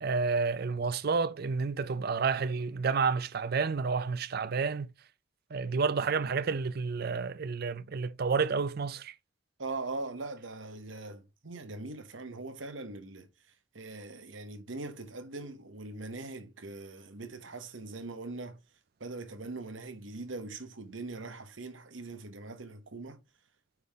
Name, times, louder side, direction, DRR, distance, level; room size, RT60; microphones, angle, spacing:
voice 1, 0.0-4.9 5.5-9.1, right 5 dB, 55° right, 0.5 m, -30 dB
voice 2, 9.6-13.3 13.7-18.6 19.0-23.2, right 3 dB, 85° right, 1.2 m, -41 dB
9.5 x 3.8 x 3.6 m
head